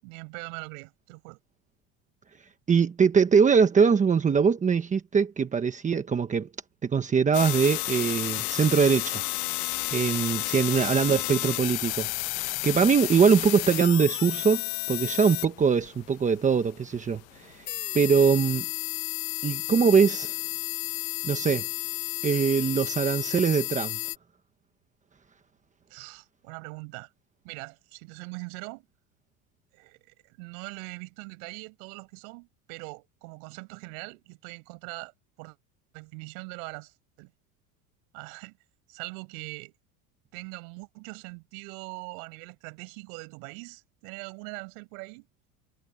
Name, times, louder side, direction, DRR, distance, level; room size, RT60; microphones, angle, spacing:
voice 1, 0.0-1.4 10.8-11.0 25.9-27.1 27.4-28.9 29.7-35.1 35.4-35.6 35.9-37.3 38.1-38.6 38.9-39.7 40.3-45.3, right 35 dB, 70° right, 7.2 m, -42 dB
voice 2, 2.7-6.5 6.8-9.2 9.9-12.1 12.4-17.6 17.9-18.6 19.4-20.3 21.2-21.7 22.2-24.0, right 6 dB, 15° right, 1.2 m, -22 dB
sound 1, 7.3-24.2, left 24 dB, 75° left, 0.8 m, -32 dB
cardioid pair, 155°, 42 cm